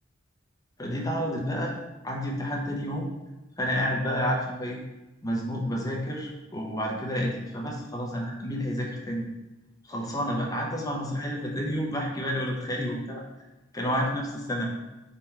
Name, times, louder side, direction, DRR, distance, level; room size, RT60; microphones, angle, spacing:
voice 1, 0.8-1.8 2.0-3.1 3.6-4.8 5.2-9.3 9.9-13.2 13.7-14.7, equal, 20° left, -1 dB, 0.6 m, -30 dB
3.8 x 2.9 x 4.3 m, 1.1 s
head